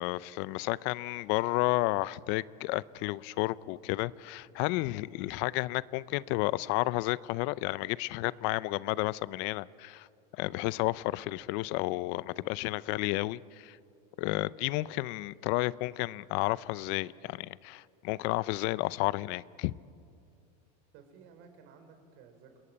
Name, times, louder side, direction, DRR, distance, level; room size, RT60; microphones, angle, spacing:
voice 1, 0.0-10.1 10.4-13.8 14.2-19.7, left 19 dB, 65° left, 20 dB, 0.6 m, -32 dB
voice 2, 20.9-22.6, right 6 dB, 65° right, 6 dB, 4.5 m, -55 dB
28.5 x 21.0 x 8.8 m, 2.4 s
supercardioid pair, 120°, 21 cm